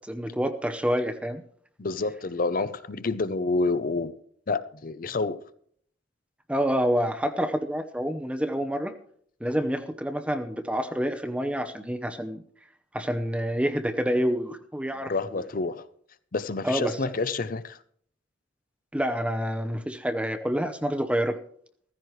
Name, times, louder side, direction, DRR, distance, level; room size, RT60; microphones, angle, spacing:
voice 1, 0.1-1.4 6.5-8.9 9.4-12.4 12.9-15.1 16.6-17.0 18.9-21.4, equal, 5° right, 0.7 m, -27 dB
voice 2, 1.8-4.1 4.5-5.4 14.9-15.9 16.3-17.8, left 3 dB, 45° left, 0.6 m, -28 dB
15.0 x 15.0 x 3.2 m
head